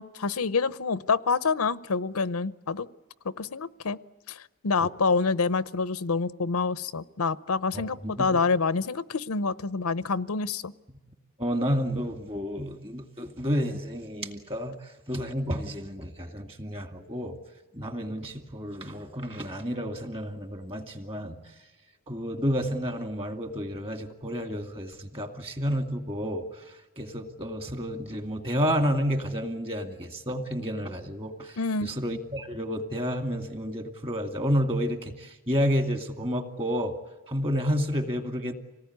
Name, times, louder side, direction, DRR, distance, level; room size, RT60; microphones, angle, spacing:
voice 1, 0.0-2.9 3.2-4.0 4.3-10.7 31.6-31.9, left 4 dB, 85° left, 16 dB, 0.7 m, -27 dB
voice 2, 8.0-8.4 11.4-17.4 17.7-21.4 22.1-36.9 37.3-38.5, equal, 25° right, 6 dB, 2.2 m, -30 dB
26.0 x 18.5 x 9.5 m, 1.2 s
head